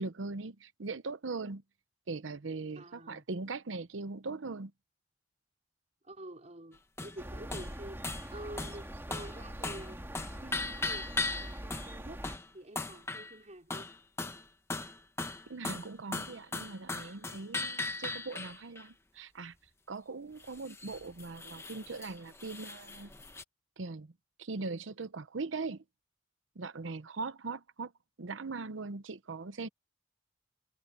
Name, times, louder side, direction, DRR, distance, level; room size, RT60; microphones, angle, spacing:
voice 1, 0.0-1.6 2.1-4.7 15.5-19.5 19.9-23.1 23.8-24.1 24.4-25.8 26.6-27.9 28.2-29.7, right 3 dB, 85° right, 0.8 m, -40 dB
voice 2, 2.7-3.2 6.0-10.0 10.4-11.1 11.4-12.3 12.5-13.9, right 1 dB, 40° right, 4.9 m, -48 dB
sound 1, 7.0-7.2 7.5-7.7 8.0-8.3 8.6-8.8 9.1-9.4 9.6-9.9 10.1-11.9 12.2-12.5 12.7-13.3 13.7-14.4 14.7-18.8 20.4-23.4, left 3 dB, 15° left, 1.1 m, -38 dB
sound 2, 7.2-12.4, right 1 dB, 15° right, 2.1 m, -43 dB
head